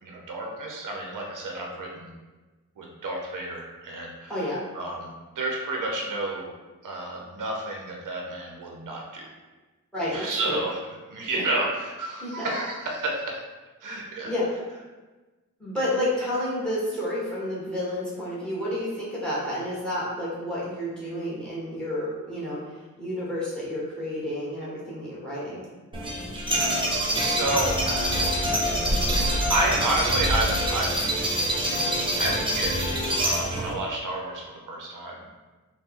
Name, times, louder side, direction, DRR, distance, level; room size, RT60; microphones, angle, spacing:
voice 1, 0.0-2.1 2.8-4.4 4.7-6.5 6.8-9.3 10.1-13.3 13.8-14.3 26.4-28.5 29.5-31.1 32.1-32.9 33.2-35.3, right 2 dB, 80° right, 0 dB, 0.7 m, -31 dB
voice 2, 9.9-10.6 11.3-11.4 12.2-12.5 14.2-14.5 15.6-22.6 23.0-25.6, left 1 dB, 5° left, -7 dB, 1.2 m, -30 dB
sound 1, 25.9-33.7, equal, 15° right, 0.6 m, -25 dB
4.2 x 2.2 x 3.6 m, 1.2 s
wide cardioid pair, 150°, 31 cm